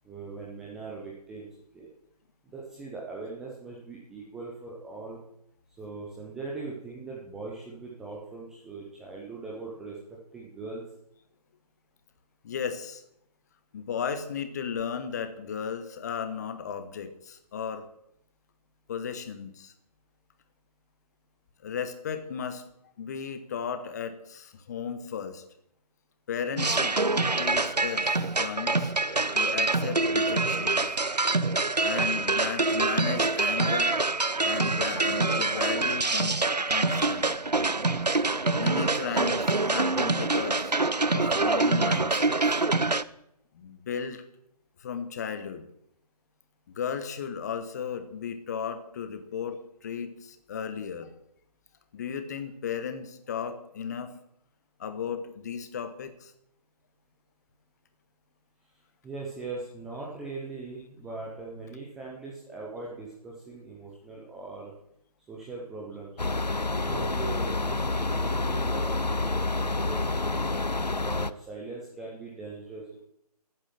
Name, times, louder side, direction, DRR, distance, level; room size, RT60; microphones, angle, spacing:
voice 1, 0.0-1.5 1.7-1.9 2.4-5.2 5.8-10.8 58.7-64.7 65.3-66.1 66.7-70.5 71.0-73.1, right 3 dB, ahead, -4 dB, 0.5 m, -40 dB
voice 2, 12.4-13.0 13.7-17.9 18.9-19.7 21.6-22.6 23.0-25.4 26.3-26.9 27.4-28.9 29.3-31.0 31.8-34.0 34.4-37.3 38.5-40.7 41.1-42.3 43.5-44.2 44.8-45.6 46.8-51.1 51.9-54.1 54.8-56.3, left 7 dB, 25° left, 10 dB, 1.1 m, -35 dB
sound 1, 26.6-43.0, right 3 dB, 85° right, 0.8 m, -25 dB
sound 2, 66.2-71.3, left 2 dB, 90° left, 0.8 m, -28 dB
13.0 x 9.2 x 7.5 m, 0.76 s
figure-of-eight pair, 145°, 20 cm